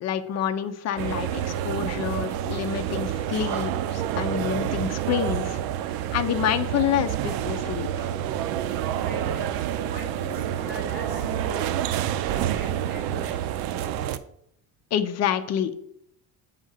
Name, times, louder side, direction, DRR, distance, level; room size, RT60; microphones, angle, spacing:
voice 1, 0.0-5.6 6.1-8.1 14.9-15.9, left 9 dB, 45° left, 8 dB, 0.7 m, -28 dB
sound 1, 1.0-14.2, right 10 dB, 85° right, 0.6 m, -28 dB
voice 2, 8.9-11.8 12.3-13.5, equal, 25° right, -2 dB, 3.2 m, -40 dB
7.9 x 3.8 x 6.4 m, 0.74 s
cardioid pair, 165°, 36 cm